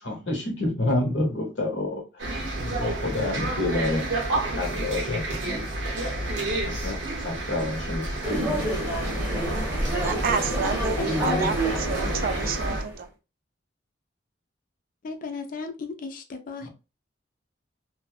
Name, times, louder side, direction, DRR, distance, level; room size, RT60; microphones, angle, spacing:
voice 1, 0.0-2.0 2.5-5.6 6.6-9.0 9.3-9.5 9.8-10.0 10.3-11.6, left 2 dB, 75° left, 0.9 m, -29 dB
sound 1, 2.2-12.8, right 2 dB, 90° right, 0.8 m, -30 dB
Wind, 5.5-10.5, equal, 20° left, 1.0 m, -38 dB
sound 2, 8.2-13.0, right 1 dB, 10° right, 0.8 m, -29 dB
voice 2, 10.0-12.8, right 5 dB, 50° right, 0.3 m, -29 dB
voice 3, 11.0-11.5 15.0-16.7, left 3 dB, 50° left, 0.4 m, -34 dB
2.5 x 2.1 x 2.4 m
head